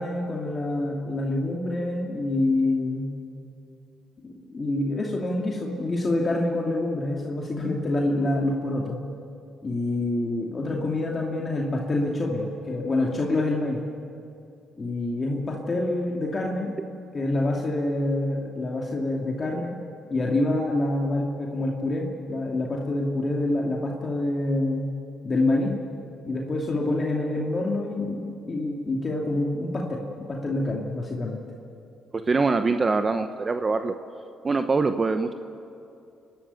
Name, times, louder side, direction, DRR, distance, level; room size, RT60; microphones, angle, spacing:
voice 1, 0.0-3.1 4.2-9.0 9.6-13.8 14.8-16.7 17.1-19.8 20.1-24.9 25.2-25.7 26.3-31.4, left 2 dB, 35° left, -1 dB, 2.5 m, -26 dB
voice 2, 32.1-34.0 34.4-35.3, right 4 dB, 30° right, 8 dB, 0.9 m, -23 dB
28.5 x 12.5 x 9.0 m, 2.6 s
cardioid pair, 90°, 0 cm